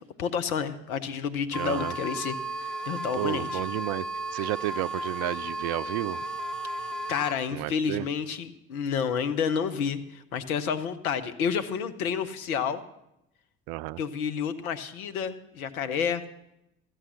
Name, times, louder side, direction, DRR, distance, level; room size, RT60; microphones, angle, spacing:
voice 1, 0.0-2.3 2.6-3.6 7.1-12.8 14.0-16.2, left 7 dB, 85° left, 11 dB, 0.8 m, -30 dB
sound 1, 1.5-7.3, right 1 dB, ahead, 0.8 m, -34 dB
voice 2, 1.5-2.0 3.1-4.1 4.3-6.2 7.5-8.1 13.7-14.0, right 18 dB, 60° right, 18 dB, 0.5 m, -31 dB
14.0 x 7.8 x 6.3 m, 0.86 s
hypercardioid pair, 50°, 41 cm